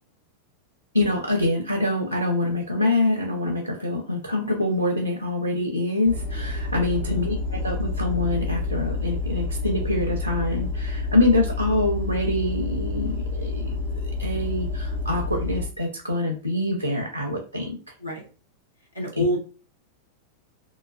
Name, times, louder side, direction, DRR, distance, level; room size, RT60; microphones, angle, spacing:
voice 1, 0.9-7.3 7.6-17.8 19.2-19.3, left 2 dB, 90° right, 2 dB, 0.5 m, -25 dB
sound 1, 6.1-15.7, left 3 dB, 65° left, 0.7 m, -29 dB
voice 2, 7.1-7.4 18.0-18.3 18.9-19.4, left 1 dB, 85° left, -2 dB, 1.1 m, -28 dB
3.1 x 2.4 x 2.4 m, 0.35 s
figure-of-eight pair, 90°, 0 cm